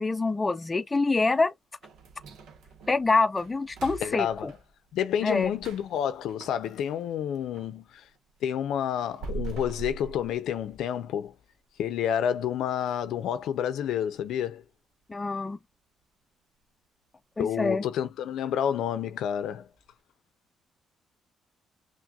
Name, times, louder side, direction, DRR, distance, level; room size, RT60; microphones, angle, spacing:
voice 1, 0.0-1.5 2.9-4.5 5.2-5.5 15.1-15.6 17.4-17.8, left 3 dB, 20° left, 0.4 m, -26 dB
sound 1, 1.8-7.8 8.1-11.0 11.3-11.4 11.9-12.0 12.6-12.9 13.2-13.3 13.8-13.9, right 4 dB, 85° right, 0.9 m, -43 dB
voice 2, 4.0-4.5 4.9-8.0 8.4-11.3 11.8-14.6 17.4-19.7, left 9 dB, 80° left, 0.5 m, -29 dB
6.0 x 2.2 x 2.4 m
cardioid pair, 90°, 0 cm